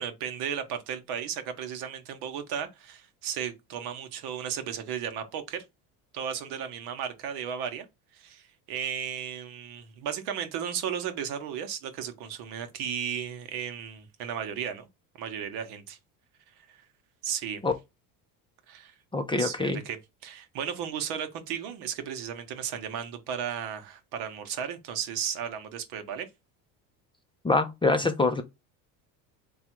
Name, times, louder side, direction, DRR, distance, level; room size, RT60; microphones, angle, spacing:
voice 1, 0.0-5.6 6.1-7.9 8.1-14.9 15.2-16.0 16.7-16.8 17.2-17.6 18.7-18.9 19.4-26.3, right 8 dB, 70° right, 1.0 m, -35 dB
voice 2, 19.1-19.8 27.4-28.4, left 3 dB, 15° left, 0.5 m, -25 dB
3.5 x 2.4 x 4.4 m
supercardioid pair, 95°, 41 cm